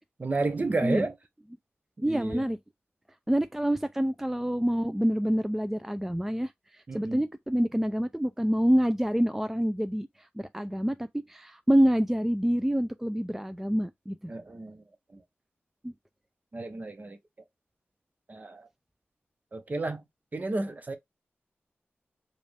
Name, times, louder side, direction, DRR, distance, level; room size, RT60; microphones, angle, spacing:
voice 1, 0.2-1.1 2.0-2.4 6.9-7.2 14.3-14.8 15.1-15.2 16.5-17.2 18.3-18.7 19.5-20.0 20.3-21.0, right 3 dB, 40° right, 0.9 m, -32 dB
voice 2, 2.0-2.6 3.3-14.3 15.8-15.9, equal, 5° right, 0.4 m, -27 dB
5.1 x 2.4 x 3.4 m
wide cardioid pair, 75°, 4 cm